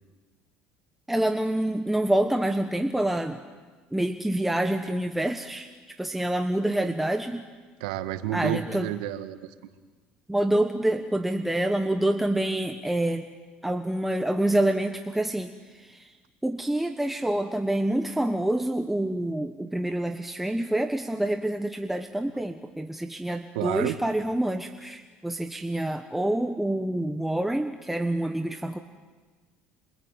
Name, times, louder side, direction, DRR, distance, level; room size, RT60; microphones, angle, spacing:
voice 1, 1.1-3.4 3.9-5.7 6.0-7.4 8.3-8.9 10.3-13.2 13.6-16.1 16.4-28.8, right 1 dB, 5° right, 6 dB, 1.4 m, -27 dB
voice 2, 7.8-9.5 23.5-24.0, right 13 dB, 90° right, 10 dB, 1.7 m, -30 dB
27.0 x 24.0 x 9.0 m, 1.4 s
supercardioid pair, 95°, 3 cm